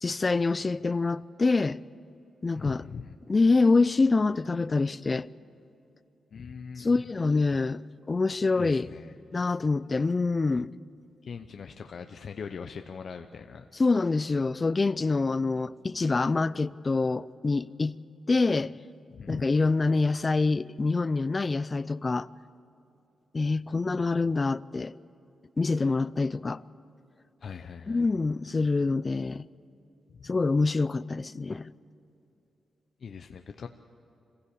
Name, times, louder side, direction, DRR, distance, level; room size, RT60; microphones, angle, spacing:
voice 1, 0.0-1.8 2.4-2.8 3.3-5.3 6.8-7.8 8.1-8.9 9.3-10.7 13.7-17.9 18.3-18.7 19.3-22.3 23.3-24.9 25.6-26.6 27.9-29.5 30.2-31.7, left 3 dB, 30° left, 0.5 m, -26 dB
voice 2, 2.5-3.2 6.3-7.0 8.6-9.1 11.2-13.7 19.1-19.5 27.4-28.0 30.2-30.3 33.0-33.7, left 6 dB, 60° left, 0.8 m, -40 dB
25.5 x 16.0 x 8.5 m
cardioid pair, 85°, 0 cm